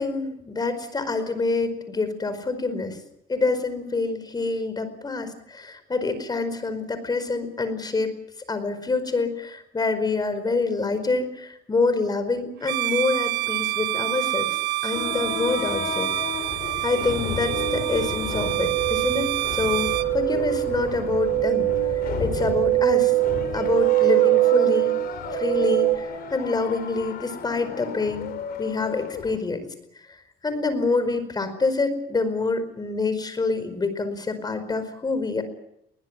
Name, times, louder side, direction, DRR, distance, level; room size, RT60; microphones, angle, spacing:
voice 1, 0.0-3.0 3.3-8.1 8.5-14.5 14.8-16.1 16.8-19.9 20.1-21.7 22.2-23.1 23.5-25.0 25.3-28.3 28.6-29.7 30.4-35.4, left 3 dB, 25° left, 11 dB, 4.9 m, -26 dB
Bowed string instrument, 12.6-20.1, right 17 dB, 85° right, 0.9 m, -28 dB
sound 1, 14.9-29.4, left 7 dB, 65° left, 4.3 m, -34 dB
sound 2, 17.5-26.0, right 18 dB, 60° right, 1.5 m, -23 dB
22.0 x 19.5 x 9.7 m, 0.80 s
cardioid pair, 110°, 17 cm